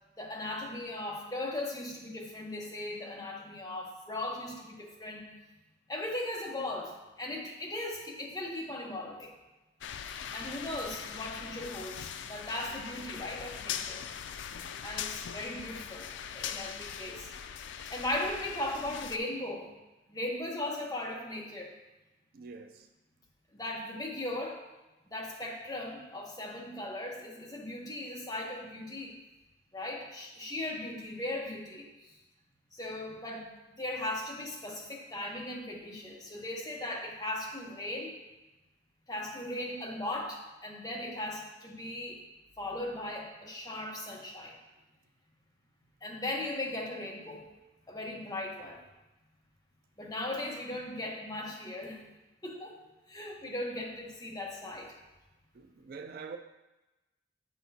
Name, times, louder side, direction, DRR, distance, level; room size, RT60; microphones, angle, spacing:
voice 1, 0.2-5.3 5.9-9.3 10.3-14.0 14.8-17.3 17.9-19.7 20.1-21.7 23.5-24.6 25.1-29.1 29.7-31.9 32.7-38.1 39.1-42.2 42.6-44.6 46.0-47.5 47.9-48.8 50.0-52.0 52.4-52.8 53.1-54.9, left 1 dB, 20° left, 0.9 m, -38 dB
sound 1, 9.8-19.2, left 8 dB, 75° left, 0.3 m, -41 dB
voice 2, 22.3-22.9 55.5-56.4, right 5 dB, 50° right, 0.3 m, -45 dB
8.2 x 6.0 x 2.7 m
head